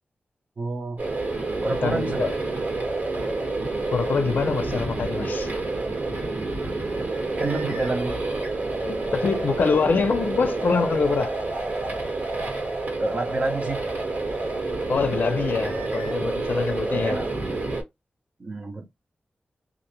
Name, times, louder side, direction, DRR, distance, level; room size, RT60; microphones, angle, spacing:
voice 1, 0.6-1.0 1.6-2.3 6.6-8.3 13.0-13.8 16.9-17.6 18.4-18.9, right 2 dB, 45° right, 0.7 m, -30 dB
sound 1, 1.0-17.8, right 2 dB, 65° right, 1.3 m, -28 dB
voice 2, 1.8-2.3 3.9-5.5 8.8-11.3 14.9-17.2, left 5 dB, 65° left, 0.5 m, -25 dB
2.4 x 2.1 x 2.9 m
wide cardioid pair, 140°, 3 cm